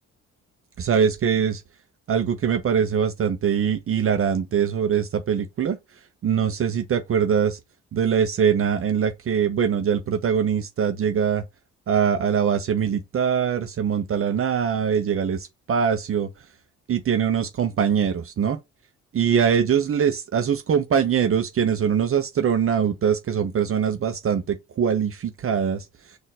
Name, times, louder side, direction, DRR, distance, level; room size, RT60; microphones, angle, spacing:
voice 1, 0.8-1.6 2.1-5.8 6.2-7.6 7.9-11.4 11.9-16.3 16.9-18.6 19.1-25.9, right 7 dB, 45° right, 0.7 m, -22 dB
4.1 x 2.6 x 4.0 m
cardioid pair, 90°, 30 cm